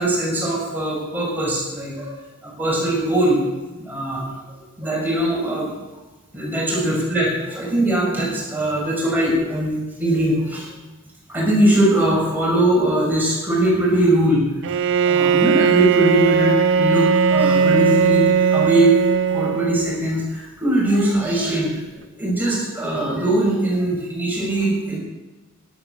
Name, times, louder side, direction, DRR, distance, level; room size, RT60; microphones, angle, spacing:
voice 1, 0.0-2.1 2.4-3.4 3.8-4.4 4.8-5.7 6.3-10.7 11.3-14.4 15.0-18.2 18.5-18.9 19.3-21.7 22.2-25.0, right 1 dB, 10° right, -5 dB, 6.3 m, -21 dB
Bowed string instrument, 14.6-20.1, right 6 dB, 60° right, 0.5 m, -18 dB
12.5 x 12.0 x 6.8 m, 1.1 s
head